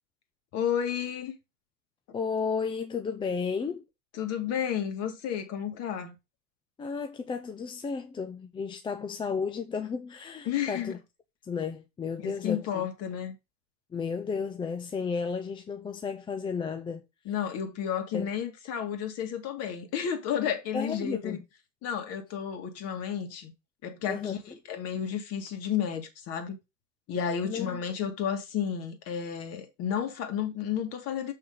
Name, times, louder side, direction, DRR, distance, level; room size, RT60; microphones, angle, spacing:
voice 1, 0.5-1.4 4.1-6.2 10.5-11.0 12.2-13.4 17.3-21.4 21.8-23.5 23.8-26.6 27.1-31.3, left 8 dB, 40° left, 2.2 m, -32 dB
voice 2, 2.1-3.8 6.8-11.0 11.4-12.9 13.9-17.0 18.1-18.3 20.7-21.4 24.1-24.4 27.4-27.8, left 5 dB, 10° left, 0.6 m, -33 dB
7.1 x 5.5 x 3.9 m
hypercardioid pair, 105°, 39 cm